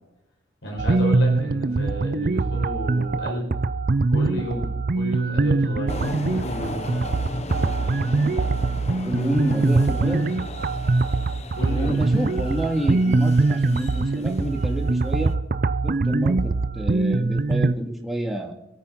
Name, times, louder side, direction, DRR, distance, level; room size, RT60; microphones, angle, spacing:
voice 1, 0.6-3.5 4.1-6.9 9.9-10.3 11.6-12.0, equal, 80° left, -1 dB, 5.3 m, -31 dB
sound 1, 0.8-17.7, right 3 dB, 50° right, 0.5 m, -23 dB
sound 2, 5.9-15.3, left 2 dB, 35° left, 0.7 m, -37 dB
voice 2, 9.0-10.2 11.7-15.3 15.8-18.5, right 1 dB, ahead, 0 dB, 2.1 m, -28 dB
25.5 x 8.7 x 3.9 m, 0.95 s
head